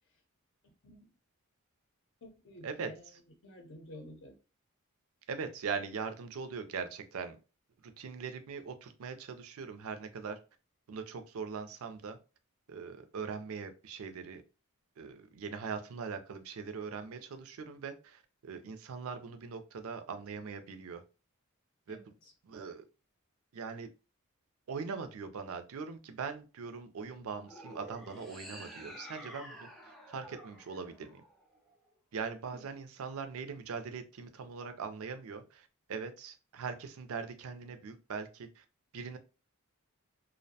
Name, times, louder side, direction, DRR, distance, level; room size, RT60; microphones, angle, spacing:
voice 1, 0.6-1.1 2.2-3.1 3.4-4.4 21.9-22.3 32.5-32.6, left 1 dB, 60° left, 0.6 m, -52 dB
voice 2, 5.3-7.4 7.8-10.4 10.9-12.2 12.7-14.4 15.0-21.0 21.9-22.0 22.4-22.9 23.5-23.9 24.7-31.2 32.1-38.6 38.9-39.2, right 5 dB, 75° right, 0.4 m, -41 dB
sound 1, 27.4-31.8, equal, ahead, 0.3 m, -50 dB
2.5 x 2.1 x 2.6 m
head